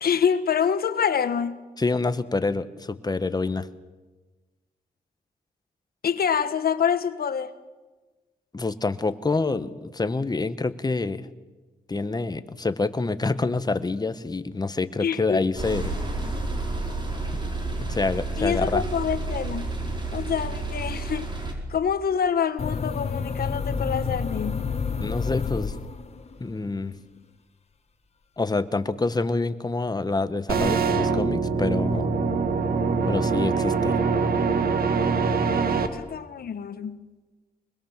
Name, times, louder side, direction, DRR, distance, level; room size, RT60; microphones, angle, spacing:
voice 1, 0.0-1.6 6.0-7.5 15.0-15.5 18.4-19.7 20.1-21.3 21.7-24.7 35.9-37.0, left 7 dB, 70° left, 11 dB, 1.3 m, -26 dB
voice 2, 1.8-3.7 8.5-11.3 11.9-15.9 17.3-17.4 17.8-18.8 25.0-25.8 26.4-27.0 28.4-32.1 33.1-34.0, left 3 dB, 25° left, 12 dB, 1.2 m, -27 dB
sound 1, 15.6-21.5, right 2 dB, 30° right, 4.6 m, -30 dB
sound 2, 22.6-26.3, left 5 dB, 40° left, 1.8 m, -29 dB
sound 3, 30.5-35.9, right 4 dB, 65° right, 1.9 m, -23 dB
25.0 x 21.0 x 7.4 m, 1.2 s
cardioid pair, 90°, 16 cm